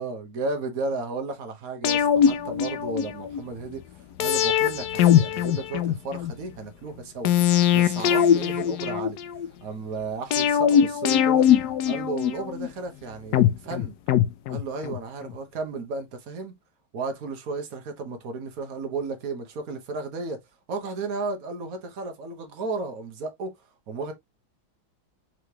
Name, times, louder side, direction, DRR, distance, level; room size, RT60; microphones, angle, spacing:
voice 1, 0.0-3.8 4.2-7.3 7.7-9.2 9.6-11.5 11.8-14.0 14.5-16.5 16.9-20.4 20.7-23.6 23.9-24.1, right 3 dB, 50° right, 1.4 m, -33 dB
sound 1, 1.8-3.4 4.2-6.3 7.2-9.5 10.3-12.7 13.3-15.0 15.3-15.4, left 9 dB, 70° left, 0.9 m, -21 dB
4.8 x 3.3 x 2.8 m
omnidirectional pair, 2.2 m